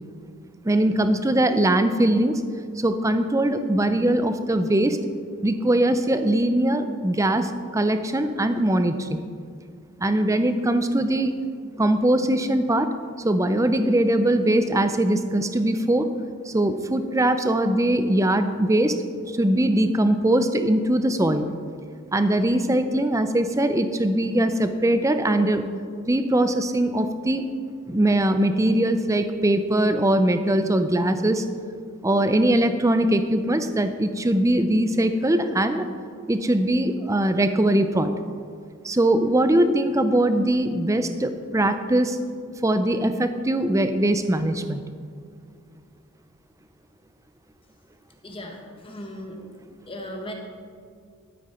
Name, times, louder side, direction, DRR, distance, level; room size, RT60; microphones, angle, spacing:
voice 1, 0.6-2.4 2.8-5.0 5.4-9.2 10.0-11.3 11.8-12.9 13.2-16.1 16.5-19.0 19.3-21.5 22.1-25.6 26.1-27.5 27.9-31.4 32.0-35.9 36.3-38.1 38.8-42.2 42.6-44.8, right 1 dB, 15° right, 9 dB, 0.5 m, -21 dB
voice 2, 48.2-48.6 48.8-49.4 49.9-50.3, equal, 25° left, 2 dB, 1.3 m, -36 dB
13.0 x 8.5 x 4.3 m, 2.1 s
head